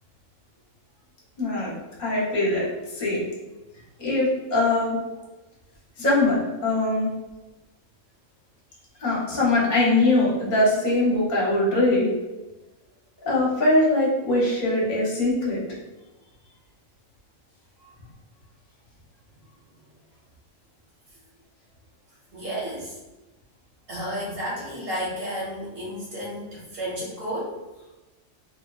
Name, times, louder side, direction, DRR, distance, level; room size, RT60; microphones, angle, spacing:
voice 1, 1.4-1.7 2.0-2.7 2.9-3.2 4.0-5.0 6.0-7.1 9.0-12.1 13.2-15.6, left 2 dB, 45° left, -6 dB, 0.8 m, -22 dB
voice 2, 22.3-22.9 23.9-27.6, equal, 55° right, -6 dB, 0.8 m, -32 dB
2.6 x 2.1 x 2.2 m, 1.1 s
omnidirectional pair, 1.3 m